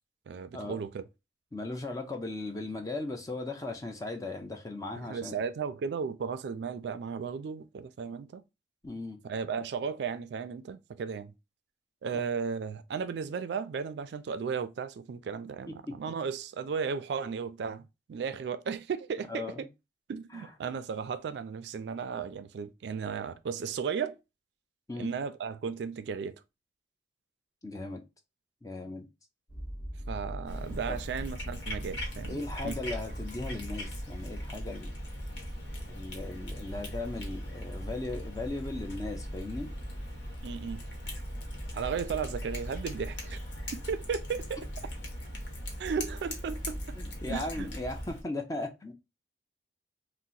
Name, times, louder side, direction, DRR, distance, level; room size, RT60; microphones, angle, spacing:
voice 1, 0.3-1.0 5.0-8.4 9.2-11.3 12.0-19.7 20.1-24.2 25.0-26.4 30.1-32.8 40.4-41.2 41.7-43.4 43.7-44.7 45.8-47.0 47.3-47.7, right 6 dB, 70° right, 0.3 m, -35 dB
voice 2, 1.5-5.3 8.8-9.2 15.9-16.0 19.3-19.7 20.3-20.5 24.9-25.1 27.6-28.0 28.6-29.1 30.9-31.0 32.3-34.9 35.9-39.7 47.0-48.9, left 2 dB, 20° left, 0.5 m, -37 dB
sound 1, 29.5-48.1, equal, 40° left, 1.1 m, -41 dB
Cat, 30.5-48.2, left 1 dB, 80° left, 1.0 m, -42 dB
2.8 x 2.1 x 3.8 m
head